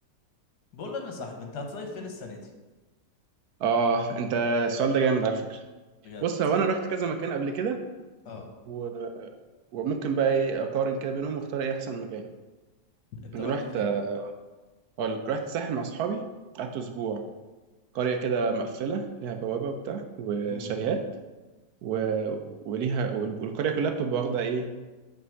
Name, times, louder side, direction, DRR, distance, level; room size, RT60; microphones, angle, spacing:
voice 1, 0.7-2.4 6.0-6.2 8.2-8.5 13.2-13.9 20.5-20.7, left 3 dB, 75° left, 3 dB, 1.5 m, -38 dB
voice 2, 3.6-5.6 6.2-7.8 8.7-9.3 9.7-12.3 13.3-14.3 15.0-16.2 16.5-17.2 17.9-21.0 21.8-24.7, right 5 dB, 70° right, 6 dB, 1.0 m, -28 dB
6.9 x 3.3 x 6.1 m, 1.2 s
omnidirectional pair, 1.8 m